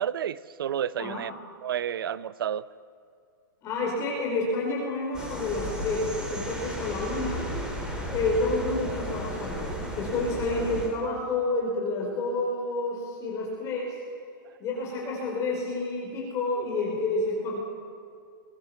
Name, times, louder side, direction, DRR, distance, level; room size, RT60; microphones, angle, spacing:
voice 1, 0.0-1.3 1.6-2.6, right 9 dB, 80° right, 17 dB, 0.7 m, -30 dB
voice 2, 3.6-7.5 8.1-13.9 14.6-17.6, left 2 dB, 25° left, -2 dB, 4.8 m, -29 dB
sound 1, 5.1-10.9, equal, 5° right, 4.0 m, -34 dB
22.5 x 20.5 x 7.1 m, 2.3 s
hypercardioid pair, 150°, 12 cm